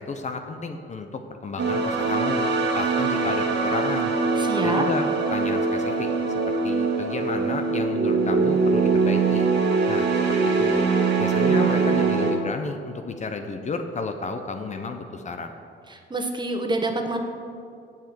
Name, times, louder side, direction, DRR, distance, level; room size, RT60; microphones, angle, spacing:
voice 1, 0.0-2.5 2.7-4.1 4.6-6.1 6.5-9.5 9.9-10.1 10.6-10.9 11.2-15.5, left 4 dB, 35° left, 6 dB, 0.8 m, -32 dB
sound 1, 1.6-12.3, right 4 dB, 65° right, 1.7 m, -22 dB
voice 2, 4.4-4.8 15.9-17.2, right 2 dB, 20° right, 4 dB, 1.3 m, -27 dB
7.4 x 7.3 x 7.8 m, 2.4 s
cardioid pair, 90°, 20 cm